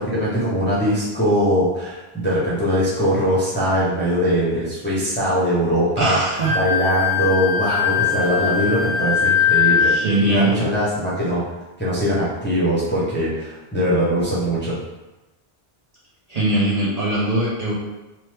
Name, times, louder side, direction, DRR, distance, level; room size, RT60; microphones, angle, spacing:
voice 1, 0.1-6.2 6.5-9.9 10.2-11.4 11.8-14.7, equal, 15° left, -8 dB, 0.6 m, -21 dB
voice 2, 6.0-6.5 9.8-10.5 16.3-17.7, right 2 dB, 45° right, -7 dB, 0.7 m, -21 dB
Wind instrument woodwind instrument, 6.4-10.1, left 7 dB, 55° left, 0.6 m, -20 dB
2.9 x 2.1 x 3.2 m, 1.1 s
omnidirectional pair, 1.1 m